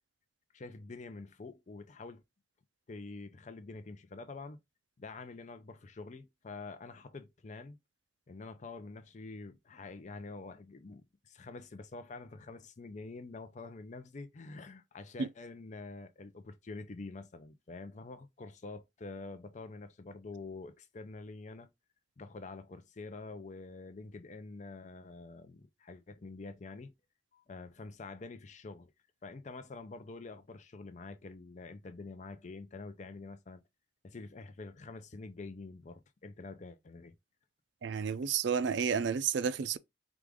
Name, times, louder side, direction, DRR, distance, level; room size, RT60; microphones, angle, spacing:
voice 1, 0.5-2.2 2.9-4.6 5.0-7.8 8.3-21.7 22.2-26.9 27.3-28.9 29.2-33.6 34.0-37.1, left 3 dB, 40° left, 0.5 m, -47 dB
voice 2, 37.8-39.8, right 6 dB, 70° right, 0.4 m, -31 dB
4.7 x 2.5 x 3.5 m
head